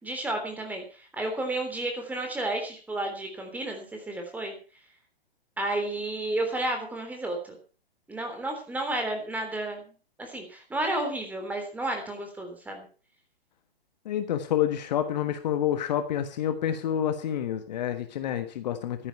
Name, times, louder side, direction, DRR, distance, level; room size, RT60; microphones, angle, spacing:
voice 1, 0.0-4.6 5.6-7.6 8.1-9.9 10.2-12.9, right 2 dB, 5° right, 3 dB, 3.4 m, -32 dB
voice 2, 14.0-19.1, left 10 dB, 45° left, 8 dB, 1.4 m, -28 dB
13.5 x 10.0 x 5.8 m, 0.37 s
figure-of-eight pair, 130°, 31 cm